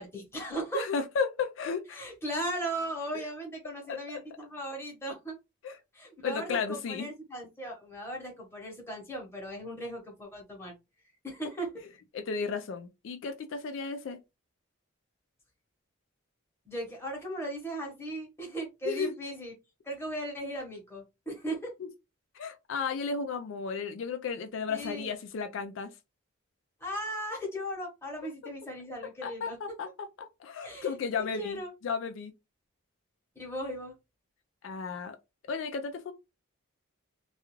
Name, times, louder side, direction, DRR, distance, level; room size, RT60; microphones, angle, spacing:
voice 1, 0.0-0.9 1.9-5.4 5.9-10.7 11.2-11.8 16.7-19.5 19.8-21.7 24.7-25.1 26.8-29.6 30.6-31.7 33.4-33.9, right 1 dB, 10° left, 0.9 m, -37 dB
voice 2, 0.7-2.1 3.1-3.2 3.9-4.0 5.6-5.8 6.2-7.1 12.1-14.2 18.8-19.1 21.8-21.9 22.3-25.9 29.2-29.9 30.2-32.3 34.6-35.2 35.5-36.1, left 5 dB, 65° left, 0.3 m, -34 dB
2.3 x 2.3 x 3.0 m
head